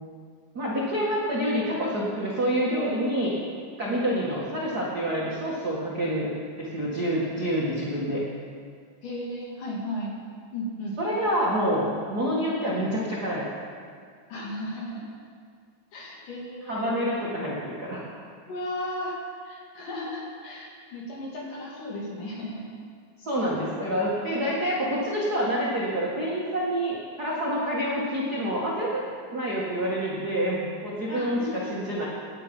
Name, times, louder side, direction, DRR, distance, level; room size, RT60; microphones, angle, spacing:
voice 1, 0.5-3.3 3.8-6.3 6.6-8.2 11.0-13.4 16.7-18.0 23.2-29.0 29.3-31.4 31.7-32.1, equal, 75° right, -6 dB, 0.9 m, -27 dB
voice 2, 9.0-10.1 10.5-11.0 14.3-15.1 15.9-17.1 18.5-19.2 19.4-22.7 31.0-31.5, left 1 dB, 55° left, -3 dB, 3.4 m, -35 dB
17.0 x 10.0 x 5.4 m, 2.1 s
omnidirectional pair, 5.2 m